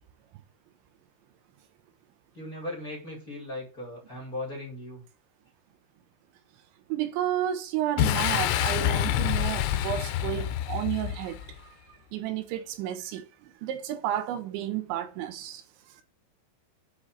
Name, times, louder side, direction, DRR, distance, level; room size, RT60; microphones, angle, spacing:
voice 1, 2.3-5.0, left 1 dB, 20° left, 3.0 m, -38 dB
voice 2, 6.9-11.4 12.1-15.6, right 11 dB, 80° right, 3.2 m, -32 dB
Boom, 8.0-11.6, left 12 dB, 90° left, 3.3 m, -27 dB
8.7 x 5.0 x 7.5 m
omnidirectional pair, 5.4 m